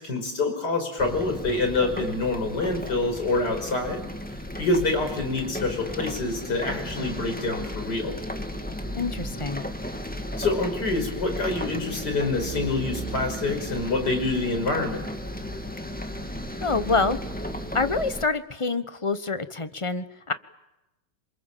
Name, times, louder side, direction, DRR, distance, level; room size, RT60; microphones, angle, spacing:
voice 1, 0.0-4.0 4.6-8.2 10.4-15.0, left 3 dB, 50° left, 6 dB, 5.9 m, -26 dB
sound 1, 1.0-18.3, equal, 5° left, 2.0 m, -34 dB
voice 2, 8.9-9.6 16.6-17.2 17.7-20.3, left 4 dB, 20° left, 11 dB, 0.9 m, -26 dB
28.0 x 26.5 x 7.5 m, 0.97 s
omnidirectional pair, 2.2 m